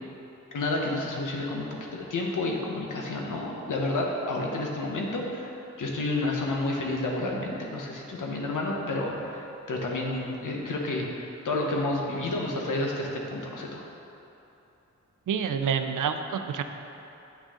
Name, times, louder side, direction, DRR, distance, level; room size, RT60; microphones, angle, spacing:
voice 1, 0.5-13.8, left 2 dB, 90° left, -1 dB, 1.1 m, -30 dB
voice 2, 15.3-16.6, right 7 dB, 85° right, 7 dB, 0.5 m, -28 dB
8.7 x 6.4 x 3.7 m, 3.0 s
cardioid pair, 55°, 31 cm